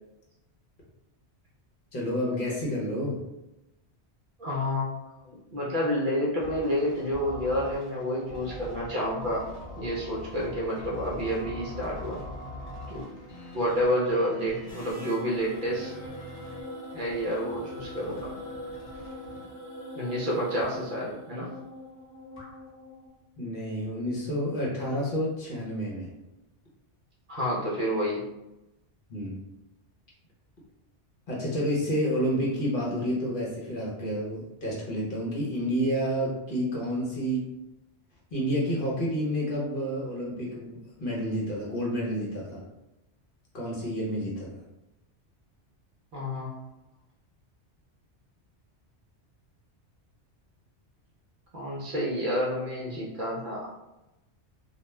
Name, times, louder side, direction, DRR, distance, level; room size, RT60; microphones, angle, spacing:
voice 1, 1.9-3.2 23.4-26.1 29.1-29.4 31.3-37.4 38.3-42.6 43.5-44.6, equal, 55° left, -5 dB, 0.9 m, -29 dB
voice 2, 4.4-4.9 5.2-9.5 9.8-12.2 12.9-13.2 13.5-15.9 16.9-18.3 19.9-21.5 27.3-28.2 46.1-46.5 51.5-53.7, equal, 55° right, -5 dB, 0.7 m, -29 dB
sound 1, 6.4-19.5, left 1 dB, 90° left, 1.0 m, -43 dB
sound 2, 14.7-23.1, left 1 dB, 15° left, 0.8 m, -42 dB
2.4 x 2.2 x 3.0 m, 0.95 s
omnidirectional pair, 1.2 m